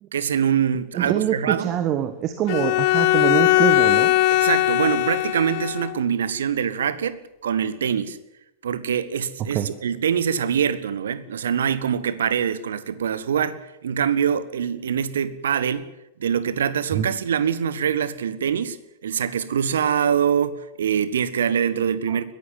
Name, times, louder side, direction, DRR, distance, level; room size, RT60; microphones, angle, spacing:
voice 1, 0.1-1.7 4.3-8.2 8.6-15.9 16.2-18.8 19.0-22.3, right 8 dB, 65° right, 1.4 m, -24 dB
voice 2, 0.9-4.1 9.5-9.7 16.9-17.1 22.1-22.2, right 10 dB, 35° right, 1.5 m, -24 dB
Bowed string instrument, 2.5-6.0, left 16 dB, 45° left, 1.3 m, -19 dB
21.0 x 14.5 x 9.4 m
figure-of-eight pair, 90°, 0 cm